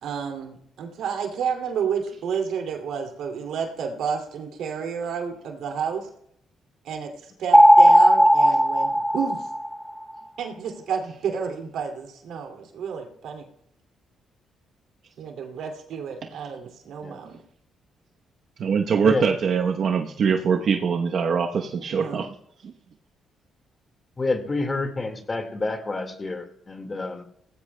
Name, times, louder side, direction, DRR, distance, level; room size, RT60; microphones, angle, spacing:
voice 1, 0.0-6.1 6.8-9.5 10.4-13.5 15.2-17.4 22.0-22.2, right 6 dB, 80° right, 3 dB, 2.4 m, -31 dB
sound 1, 7.5-10.0, equal, 5° right, 0.7 m, -15 dB
voice 2, 18.6-22.3 22.6-22.7, right 6 dB, 60° right, 3 dB, 0.9 m, -23 dB
voice 3, 24.2-27.2, left 3 dB, 30° left, 7 dB, 1.8 m, -28 dB
18.0 x 15.5 x 2.2 m, 0.73 s
cardioid pair, 90°, 0 cm